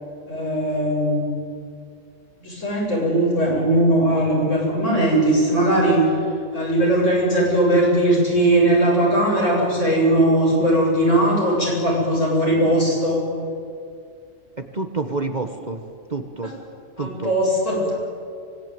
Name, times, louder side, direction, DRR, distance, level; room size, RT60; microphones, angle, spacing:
voice 1, 0.3-1.3 2.4-6.0 6.5-13.2 17.0-18.0, right 1 dB, 65° left, -4 dB, 8.6 m, -19 dB
voice 2, 14.6-15.8 16.1-16.5 17.0-17.3, right 3 dB, 35° right, 7 dB, 1.3 m, -28 dB
24.5 x 19.0 x 9.3 m, 2.3 s
omnidirectional pair, 1.4 m